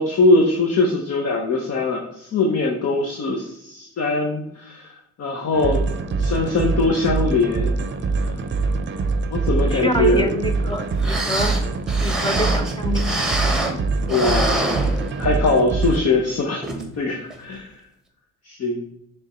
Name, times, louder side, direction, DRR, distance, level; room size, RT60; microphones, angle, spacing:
voice 1, 0.0-5.8 6.2-7.7 9.3-10.4 14.1-14.9 15.2-16.6 17.0-17.7 18.4-18.8, left 2 dB, 50° left, 1 dB, 1.0 m, -21 dB
sound 1, 5.5-16.0, right 3 dB, 35° right, 0.6 m, -24 dB
voice 2, 9.6-11.5 12.0-13.1, equal, 15° left, 6 dB, 0.7 m, -26 dB
sound 2, 10.7-10.8 11.0-13.8 14.1-15.5 15.9-16.0 16.6-16.9 17.3-17.4, right 1 dB, ahead, 1.1 m, -25 dB
6.6 x 3.5 x 4.3 m, 0.82 s
cardioid pair, 105°, 31 cm